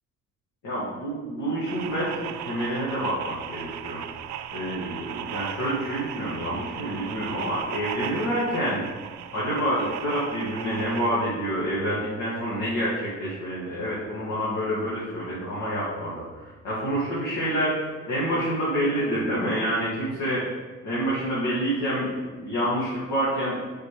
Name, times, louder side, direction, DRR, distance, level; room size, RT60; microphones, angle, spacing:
voice 1, 0.6-4.0 4.5-8.8 9.3-20.5 20.8-23.6, equal, 75° left, -8 dB, 2.2 m, -28 dB
sound 1, 1.7-11.1, right 10 dB, 70° right, 0.4 m, -36 dB
7.9 x 5.0 x 3.3 m, 1.3 s
cardioid pair, 90°, 30 cm